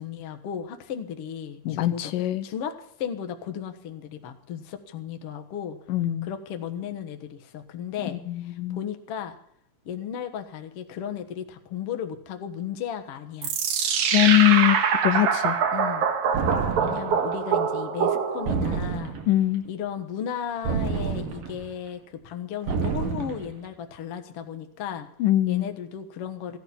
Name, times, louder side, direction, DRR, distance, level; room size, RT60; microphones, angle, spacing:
voice 1, 0.0-2.2 2.4-5.8 6.2-9.4 9.9-13.5 15.7-16.1 16.8-19.2 19.6-25.1 25.5-26.6, left 8 dB, 55° left, 6 dB, 2.0 m, -35 dB
voice 2, 1.7-2.4 5.9-6.3 8.1-8.8 14.1-14.8 15.0-15.6 19.3-19.6 25.2-25.7, left 15 dB, 80° left, 10 dB, 2.4 m, -22 dB
sound 1, 13.4-18.7, right 7 dB, 65° right, 2.8 m, -24 dB
sound 2, 16.3-17.2 18.5-19.4 20.6-21.7 22.7-23.5, right 5 dB, 80° right, 3.6 m, -29 dB
16.0 x 12.0 x 7.1 m, 0.64 s
omnidirectional pair, 3.9 m